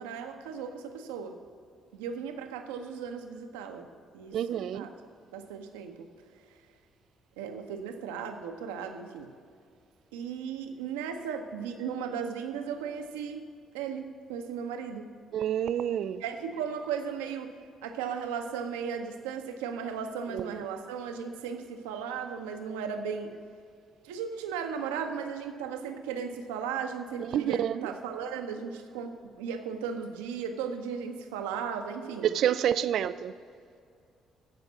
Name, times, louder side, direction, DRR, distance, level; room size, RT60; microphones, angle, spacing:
voice 1, 0.0-1.4 1.9-3.9 4.1-4.9 5.3-6.1 7.4-9.3 10.1-13.5 13.7-15.1 16.2-17.5 17.8-23.3 24.0-32.3, right 7 dB, 75° right, 0.8 m, -36 dB
voice 2, 4.3-4.8 15.3-16.2 20.3-20.4 27.3-27.9 32.2-33.3, right 10 dB, 60° right, 0.3 m, -28 dB
14.5 x 5.2 x 7.2 m
figure-of-eight pair, 45°, 0 cm